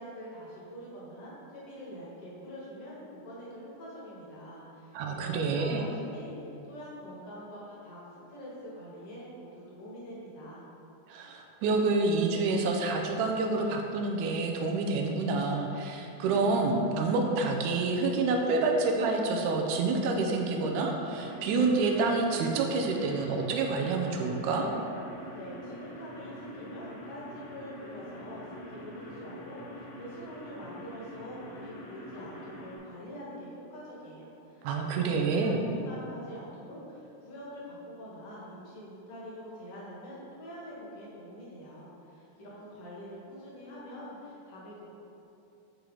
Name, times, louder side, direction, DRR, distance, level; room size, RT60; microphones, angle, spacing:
voice 1, 0.0-10.6 25.3-44.8, equal, 55° left, -6 dB, 2.2 m, -45 dB
voice 2, 4.9-5.8 11.1-24.7 34.6-35.6, right 3 dB, 80° right, 2 dB, 1.8 m, -28 dB
sound 1, 21.1-32.8, equal, 80° left, 2.9 m, -45 dB
8.2 x 4.4 x 3.9 m, 2.8 s
omnidirectional pair, 4.1 m